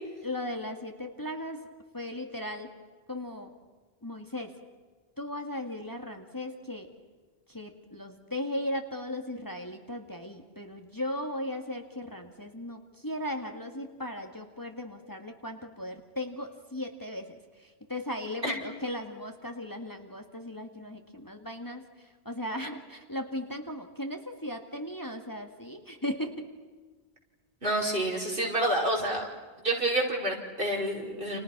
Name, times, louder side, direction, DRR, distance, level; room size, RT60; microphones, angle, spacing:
voice 1, 0.2-2.7 3.1-3.5 4.0-4.6 5.2-6.9 7.5-26.5, left 1 dB, 20° left, 4 dB, 2.1 m, -37 dB
voice 2, 27.6-29.3 29.6-31.4, right 1 dB, 55° right, 0 dB, 6.0 m, -28 dB
30.0 x 29.5 x 6.1 m, 1.4 s
omnidirectional pair, 1.1 m